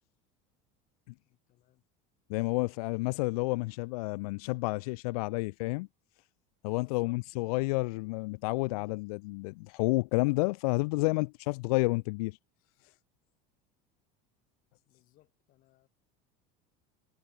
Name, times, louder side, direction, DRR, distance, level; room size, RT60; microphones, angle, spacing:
voice 1, 1.2-1.8 6.6-8.0 14.9-15.9, left 16 dB, 50° left, 4.9 m, -65 dB
voice 2, 2.3-5.9 6.6-12.4, left 25 dB, 85° left, 0.7 m, -30 dB
cardioid pair, 145°, 18 cm